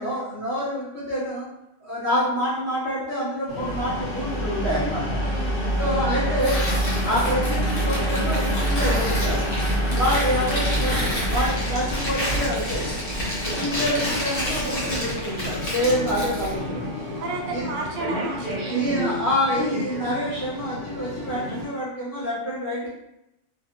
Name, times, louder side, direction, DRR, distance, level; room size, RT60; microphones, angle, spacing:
voice 1, 0.0-1.5 1.8-5.2 5.8-6.6 7.0-9.5 9.9-12.9 13.4-16.8 17.5-17.7 18.7-22.9, equal, 15° left, -9 dB, 1.0 m, -27 dB
sound 1, 3.5-15.2, right 1 dB, 55° left, 0.8 m, -27 dB
sound 2, 3.5-21.7, equal, 40° right, 0.8 m, -33 dB
voice 2, 5.2-6.2 9.8-10.2 15.9-16.2 17.2-19.3, right 2 dB, 80° right, 0 dB, 1.0 m, -35 dB
Tearing, 6.4-16.6, equal, 70° left, 1.2 m, -29 dB
2.7 x 2.2 x 2.5 m, 0.85 s
omnidirectional pair, 1.4 m